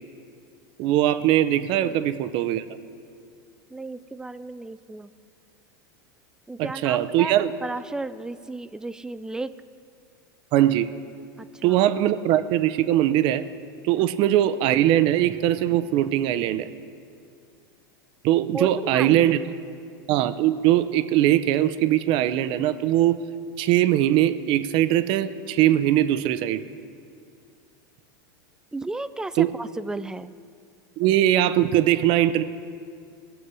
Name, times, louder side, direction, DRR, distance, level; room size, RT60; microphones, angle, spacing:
voice 1, 0.8-2.6 6.6-7.5 10.5-10.9 11.6-13.4 13.8-16.7 18.2-19.4 20.1-23.2 23.6-26.6 29.4-29.5 31.0-32.4, right 12 dB, 50° right, 13 dB, 0.6 m, -21 dB
voice 2, 3.7-5.1 6.5-7.3 7.6-9.5 11.4-11.8 18.5-19.5 28.7-30.3, right 2 dB, 5° right, 14 dB, 0.4 m, -34 dB
20.5 x 7.4 x 4.8 m, 2.4 s
supercardioid pair, 120°, 11 cm